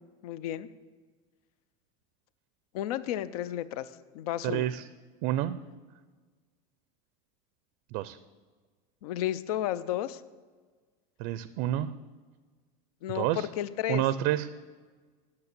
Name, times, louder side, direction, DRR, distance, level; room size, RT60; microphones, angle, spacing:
voice 1, 0.2-0.7 2.7-4.7 9.0-10.2 13.0-14.0, left 12 dB, 85° left, 16 dB, 0.5 m, -32 dB
voice 2, 4.4-4.8 5.2-5.6 7.9-8.2 11.2-11.9 13.1-13.5 13.9-14.5, right 13 dB, 55° right, 15 dB, 0.4 m, -28 dB
9.6 x 6.7 x 6.7 m, 1.4 s
supercardioid pair, 155°, 19 cm